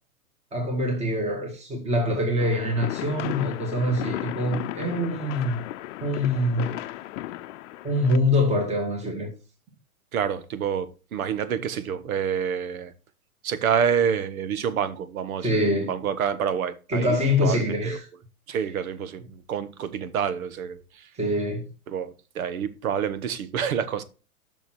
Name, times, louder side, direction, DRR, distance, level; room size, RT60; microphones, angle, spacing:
voice 1, 0.5-5.6 6.0-6.8 7.8-9.3 15.4-15.9 16.9-18.1 18.5-18.6 21.2-21.6, left 1 dB, 15° right, 2.0 m, -24 dB
sound 1, 2.4-8.2, left 15 dB, 55° left, 0.7 m, -35 dB
voice 2, 10.1-12.9 13.4-18.0 18.5-21.1 21.9-24.0, right 8 dB, 75° right, 1.3 m, -28 dB
6.9 x 6.3 x 6.1 m
hypercardioid pair, 125°, 43 cm